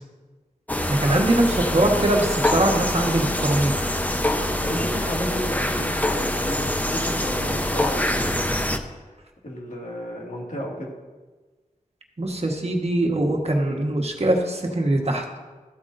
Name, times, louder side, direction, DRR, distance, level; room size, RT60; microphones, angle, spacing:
sound 1, 0.7-8.8, left 1 dB, 10° left, 0.8 m, -25 dB
voice 1, 0.9-3.7 12.2-15.4, right 1 dB, 50° right, 1 dB, 1.4 m, -22 dB
voice 2, 4.6-8.6 9.4-10.9, equal, 65° left, -2 dB, 2.2 m, -32 dB
14.0 x 8.1 x 2.6 m, 1.3 s
wide cardioid pair, 50°, 14 cm